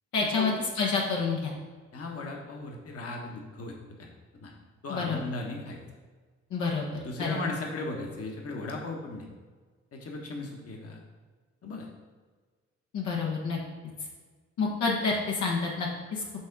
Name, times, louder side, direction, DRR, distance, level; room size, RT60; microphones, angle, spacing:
voice 1, 0.1-1.5 4.9-5.2 6.5-6.9 7.2-7.4 12.9-13.6 14.6-16.2, left 4 dB, 75° left, -2 dB, 1.3 m, -28 dB
voice 2, 1.9-4.1 4.4-4.5 4.8-5.8 7.0-9.3 9.9-11.0 11.6-11.9, left 2 dB, 55° left, 0 dB, 1.4 m, -37 dB
6.1 x 3.6 x 6.0 m, 1.4 s
supercardioid pair, 55°, 29 cm